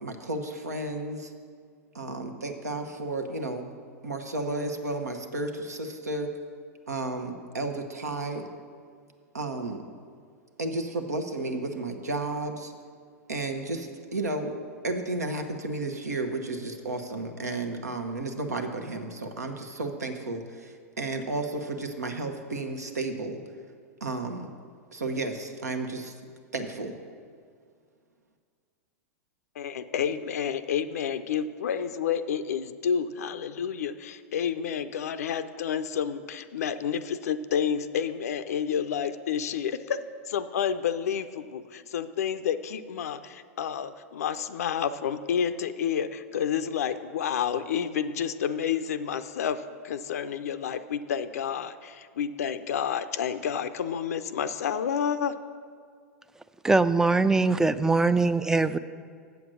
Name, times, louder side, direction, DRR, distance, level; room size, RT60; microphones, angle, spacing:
voice 1, 0.0-1.3 1.9-3.7 4.0-6.3 6.9-8.4 9.3-9.8 10.6-12.7 13.3-14.6 14.8-23.4 24.0-24.5 24.9-26.1 26.5-26.9, right 2 dB, 85° right, 5 dB, 1.0 m, -32 dB
voice 2, 29.6-40.0 40.3-55.3, left 8 dB, 70° left, 11 dB, 0.4 m, -30 dB
voice 3, 56.6-58.8, right 3 dB, 5° right, 13 dB, 0.3 m, -22 dB
7.9 x 7.1 x 6.2 m, 2.1 s
hypercardioid pair, 100°, 9 cm